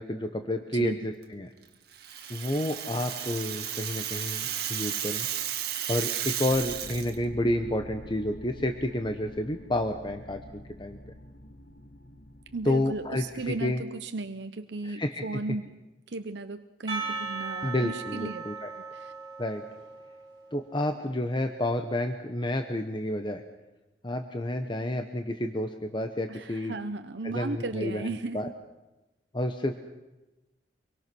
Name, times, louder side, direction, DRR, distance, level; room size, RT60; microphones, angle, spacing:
voice 1, 0.0-1.5 2.3-5.3 5.9-11.0 12.6-13.8 14.8-15.2 17.6-18.7 19.4-19.6 20.5-23.4 24.0-26.7 27.2-28.1 28.3-28.5 29.3-29.7, left 1 dB, 25° left, 6 dB, 1.2 m, -30 dB
Rattle (instrument), 1.9-7.1, right 10 dB, 60° right, 2.1 m, -33 dB
sound 1, 6.5-13.7, left 1 dB, 65° left, 1.5 m, -47 dB
voice 2, 12.5-15.7 16.1-18.4 18.9-19.1 26.3-28.5, right 3 dB, 85° right, 9 dB, 0.9 m, -35 dB
Percussion, 16.9-20.8, right 5 dB, 25° right, 6.2 m, -38 dB
25.0 x 23.5 x 6.2 m, 1.0 s
head